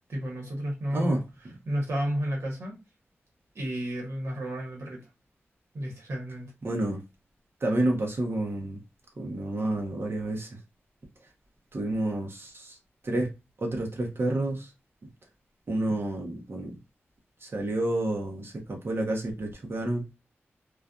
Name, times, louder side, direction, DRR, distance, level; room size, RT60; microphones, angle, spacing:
voice 1, 0.1-1.2 1.6-2.8 3.5-5.1 5.7-6.5, equal, 80° right, 1.1 m, -31 dB
voice 2, 6.6-7.0 7.6-8.8 9.2-10.6 11.7-12.8 13.0-13.3 13.6-14.7 15.7-16.8 17.4-20.0, right 1 dB, 55° right, 0.8 m, -29 dB
2.5 x 2.4 x 2.3 m
cardioid pair, 65°, 5 cm